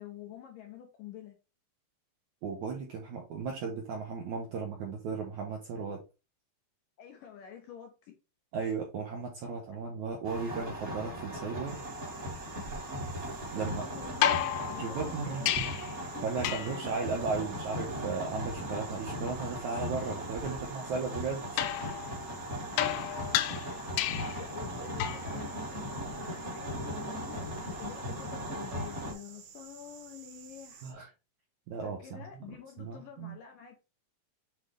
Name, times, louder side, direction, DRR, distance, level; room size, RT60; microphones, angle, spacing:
voice 1, 0.0-1.4 7.0-8.1 12.5-12.8 13.6-15.7 16.2-16.3 20.9-21.0 22.8-23.0 23.9-30.9 31.8-33.8, left 9 dB, 75° left, 2.1 m, -48 dB
voice 2, 2.4-6.0 8.5-11.8 13.5-13.8 14.8-15.7 16.2-21.7 30.8-31.1 31.7-32.3 32.8-33.4, right 5 dB, 75° right, 1.8 m, -36 dB
sound 1, 10.2-29.1, equal, 30° right, 1.3 m, -38 dB
sound 2, 11.7-30.9, right 7 dB, 90° right, 3.4 m, -52 dB
sound 3, 14.2-16.0 16.4-16.9 21.6-24.5 25.0-25.4 27.3-27.4, left 12 dB, 90° left, 2.9 m, -32 dB
8.1 x 3.9 x 3.4 m
omnidirectional pair, 4.8 m